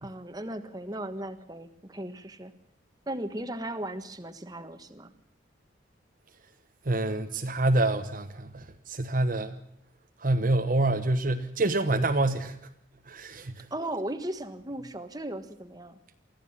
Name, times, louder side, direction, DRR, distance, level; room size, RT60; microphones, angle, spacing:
voice 1, 0.0-2.5 3.1-5.1 13.7-16.0, right 1 dB, 20° right, 8 dB, 1.5 m, -36 dB
voice 2, 6.8-9.6 10.2-12.6 13.1-13.7, right 2 dB, 45° right, 7 dB, 1.1 m, -27 dB
24.5 x 15.0 x 7.1 m, 0.77 s
head